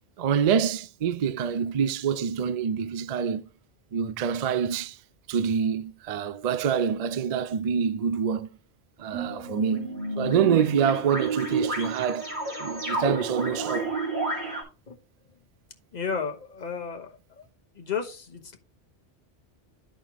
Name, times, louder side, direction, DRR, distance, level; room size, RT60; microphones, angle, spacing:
voice 1, 0.2-3.4 3.9-5.0 5.3-8.5 9.0-12.3 12.6-13.9, right 7 dB, 50° right, 0.5 m, -26 dB
sound 1, 9.1-14.6, right 2 dB, 75° right, 2.5 m, -30 dB
voice 2, 15.9-17.5 17.8-18.6, left 6 dB, 40° left, 1.2 m, -33 dB
12.5 x 4.4 x 2.9 m
omnidirectional pair, 1.1 m